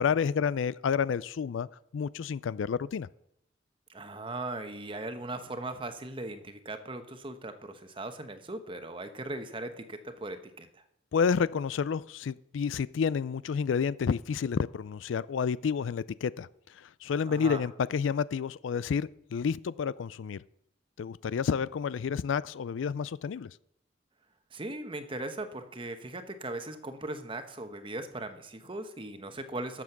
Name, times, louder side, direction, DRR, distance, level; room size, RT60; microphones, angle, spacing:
voice 1, 0.0-1.7 1.9-3.1 11.1-16.5 16.7-20.4 21.0-23.5, left 6 dB, 85° left, 19 dB, 0.4 m, -30 dB
voice 2, 3.9-10.8 17.3-17.6 24.5-29.8, right 2 dB, 25° right, 8 dB, 1.0 m, -39 dB
12.5 x 7.3 x 5.9 m, 0.79 s
head